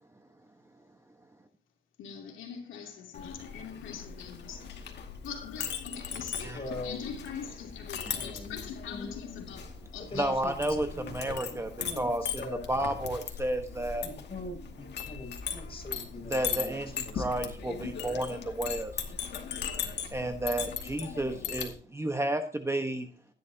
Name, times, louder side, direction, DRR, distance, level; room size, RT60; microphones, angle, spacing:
voice 1, 2.0-4.9 5.2-10.3 19.4-19.6, left 7 dB, 80° left, 3.0 m, -42 dB
Chink clink, 3.1-21.7, left 7 dB, 60° left, 2.4 m, -39 dB
voice 2, 6.5-7.0 8.1-8.6 8.9-9.1 10.1-12.7 14.0-17.2, left 2 dB, 30° left, 7.0 m, -42 dB
voice 3, 10.2-10.9 11.1-12.4 12.7-14.1 16.3-18.9 20.1-23.1, right 1 dB, 15° right, 1.3 m, -31 dB
16.0 x 10.5 x 2.9 m
cardioid pair, 90°, 20 cm